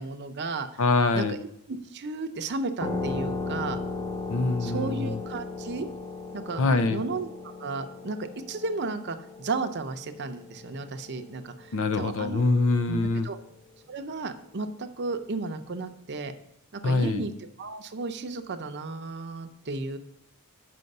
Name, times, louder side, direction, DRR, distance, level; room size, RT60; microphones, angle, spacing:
voice 1, 0.0-0.8 1.1-1.4 1.7-3.8 4.6-5.9 6.3-6.6 6.9-12.4 12.9-13.4 13.9-16.3 16.7-20.0, right 3 dB, 50° right, 8 dB, 0.7 m, -34 dB
voice 2, 0.8-1.4 4.3-5.2 6.6-7.0 11.7-13.3 16.8-17.2, left 3 dB, 60° left, 12 dB, 0.5 m, -24 dB
sound 1, 2.8-12.0, left 3 dB, 15° left, 0.7 m, -36 dB
7.8 x 5.7 x 5.4 m, 0.76 s
head